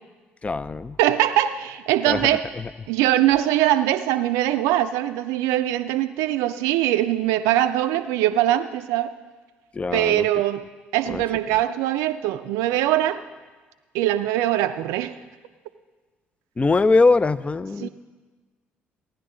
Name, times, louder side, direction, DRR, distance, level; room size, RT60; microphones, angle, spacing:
voice 1, 0.4-1.0 2.1-2.3 2.6-2.7 9.7-10.3 11.1-11.2 16.6-17.9, left 3 dB, 25° left, 16 dB, 0.5 m, -21 dB
voice 2, 1.0-2.5 2.9-9.1 9.9-10.6 10.9-13.2 13.9-15.2 17.8-17.9, right 13 dB, 75° right, 10 dB, 0.4 m, -22 dB
16.0 x 10.0 x 3.8 m, 1.3 s
hypercardioid pair, 55°, 5 cm